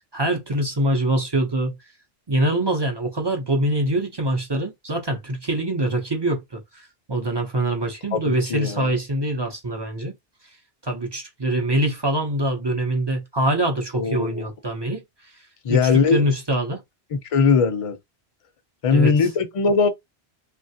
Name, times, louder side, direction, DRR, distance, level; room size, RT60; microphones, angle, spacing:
voice 1, 0.1-1.8 2.3-10.1 10.8-15.0 15.7-16.8 18.9-19.1, right 1 dB, 30° right, 0.5 m, -24 dB
voice 2, 8.1-8.9 14.0-14.5 15.6-16.3 17.3-18.0 18.8-19.9, left 5 dB, 45° left, 0.5 m, -20 dB
3.1 x 2.3 x 2.7 m
omnidirectional pair, 1.1 m